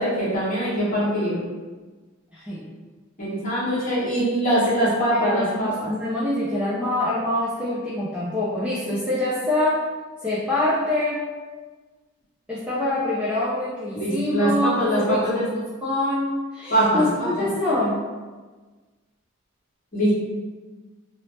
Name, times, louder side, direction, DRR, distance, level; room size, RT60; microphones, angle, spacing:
voice 1, 0.0-1.4 3.2-5.9 13.9-15.5 16.7-17.5 19.9-20.1, equal, 40° left, -9 dB, 1.0 m, -23 dB
voice 2, 2.3-2.7 5.2-9.8 10.2-11.2 12.5-15.5 15.8-18.0, left 1 dB, 5° right, -9 dB, 0.4 m, -25 dB
2.7 x 2.0 x 3.1 m, 1.3 s
head